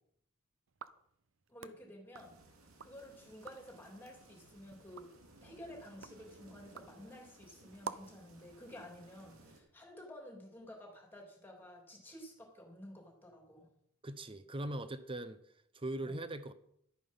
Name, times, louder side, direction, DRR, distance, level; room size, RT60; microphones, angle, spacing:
sound 1, 0.7-3.0 3.3-3.8 4.3-8.3, right 6 dB, 65° right, 0.7 m, -51 dB
voice 1, 1.5-2.4 2.8-5.1 5.4-13.7 16.0-16.2, left 1 dB, 10° left, 0 dB, 3.1 m, -52 dB
sound 2, 2.1-9.6, right 2 dB, 85° right, 2.6 m, -60 dB
voice 2, 14.0-15.4 15.7-16.5, right 1 dB, 25° right, 12 dB, 0.8 m, -40 dB
12.5 x 9.1 x 5.5 m, 0.71 s
head